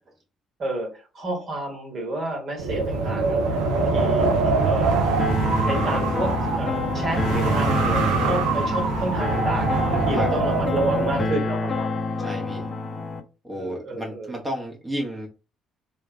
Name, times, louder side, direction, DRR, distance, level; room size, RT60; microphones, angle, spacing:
voice 1, 0.6-5.3 5.6-11.9 13.5-14.3, right 1 dB, 45° right, 1.5 m, -31 dB
Wind, 2.6-11.3, right 4 dB, 65° right, 0.6 m, -23 dB
sound 1, 5.2-13.2, left 3 dB, 30° left, 0.6 m, -28 dB
voice 2, 12.2-12.7 13.4-15.3, equal, 20° right, 1.1 m, -31 dB
3.2 x 2.4 x 3.1 m
figure-of-eight pair, 45°, 0 cm